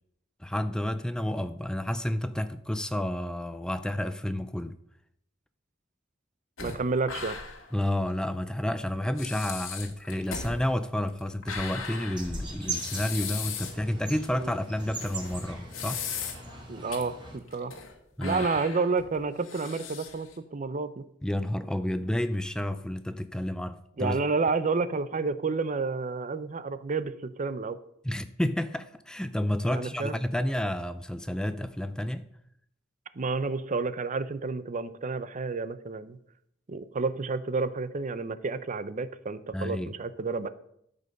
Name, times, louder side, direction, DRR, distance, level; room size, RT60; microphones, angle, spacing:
voice 1, 0.4-4.8 7.7-16.0 18.2-18.5 21.2-24.2 28.0-32.2 39.5-39.9, left 1 dB, 5° left, 11 dB, 0.3 m, -30 dB
sound 1, 6.6-7.7 8.1-8.2 8.8-8.9 9.2-13.8 14.2-14.3 15.0-16.6 16.9-17.0 17.5-17.9 18.2-20.4, left 6 dB, 85° left, 1.8 m, -38 dB
voice 2, 6.6-7.4 14.4-14.5 16.7-17.8 18.2-21.0 24.0-27.8 29.7-30.1 33.2-36.2 36.7-40.5, right 4 dB, 40° right, 14 dB, 0.6 m, -30 dB
sound 2, 12.1-17.4, right 3 dB, 25° right, 3.2 m, -40 dB
13.0 x 5.3 x 6.4 m, 0.73 s
head